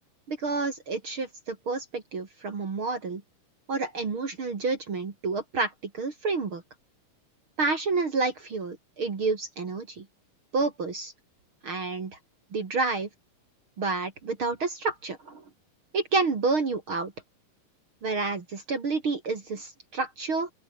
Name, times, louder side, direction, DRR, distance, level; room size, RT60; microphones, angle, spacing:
voice 1, 0.3-3.2 3.7-6.6 7.6-10.0 10.5-11.1 11.6-12.2 12.5-13.1 13.8-15.4 15.9-17.1 18.0-20.5, right 3 dB, 40° right, 3.1 m, -29 dB
open air
omnidirectional pair, 4.0 m